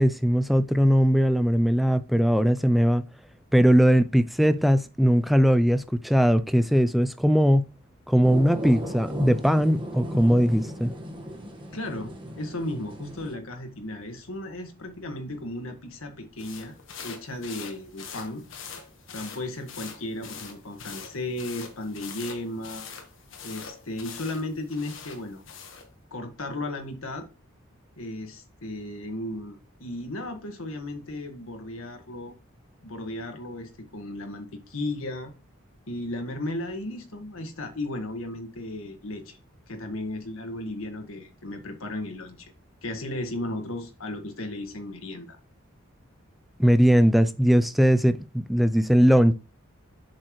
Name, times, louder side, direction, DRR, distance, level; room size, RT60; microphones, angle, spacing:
voice 1, 0.0-3.0 3.5-7.7 8.1-10.9 46.6-49.3, equal, ahead, 0.4 m, -20 dB
sound 1, 8.2-13.3, equal, 25° right, 1.5 m, -36 dB
voice 2, 11.7-16.7 17.0-18.4 19.1-22.9 23.4-25.4 26.1-27.3 28.0-32.4 32.8-35.3 35.9-39.4 39.7-42.5 42.8-45.4, left 1 dB, 90° left, 1.7 m, -35 dB
sound 2, 16.4-25.9, left 6 dB, 65° left, 1.5 m, -43 dB
7.5 x 6.9 x 3.2 m
head